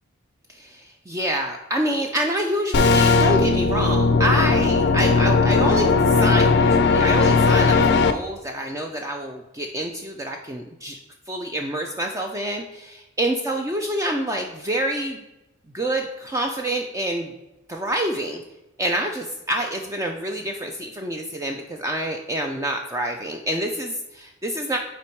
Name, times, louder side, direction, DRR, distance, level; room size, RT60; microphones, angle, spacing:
voice 1, 0.5-11.0 11.3-15.2 15.7-17.3 17.7-18.4 18.8-24.8, right 1 dB, 15° right, 2 dB, 0.4 m, -27 dB
sound 1, 2.7-8.1, left 4 dB, 50° left, 0.4 m, -17 dB
5.9 x 4.2 x 4.6 m, 0.95 s
head